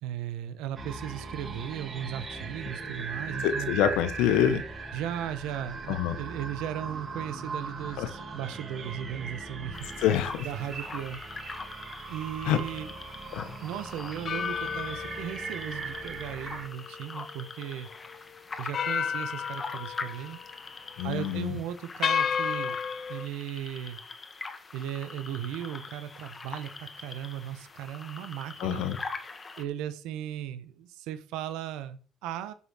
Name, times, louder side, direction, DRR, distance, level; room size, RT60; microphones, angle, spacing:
voice 1, 0.0-3.7 4.9-9.9 10.4-11.7 12.1-12.9 13.6-17.9 18.6-20.4 21.0-22.8 23.1-24.0 24.7-28.8 29.6-32.5, right 10 dB, 85° right, 11 dB, 1.2 m, -37 dB
sound 1, 0.8-16.7, right 4 dB, 45° right, 3.9 m, -39 dB
voice 2, 3.4-4.6 5.9-6.2 8.0-8.1 10.0-10.5 12.4-12.6 13.3-13.5 21.0-21.6 28.6-29.0, left 10 dB, 80° left, 11 dB, 1.3 m, -26 dB
sound 2, 9.7-29.6, left 4 dB, 35° left, 1.8 m, -43 dB
sound 3, 12.7-12.9 14.3-17.7 18.1-18.2 18.7-20.6 20.9-21.2 22.0-23.3, left 7 dB, 55° left, 0.8 m, -33 dB
11.0 x 5.8 x 6.5 m, 0.40 s
supercardioid pair, 70°, 0 cm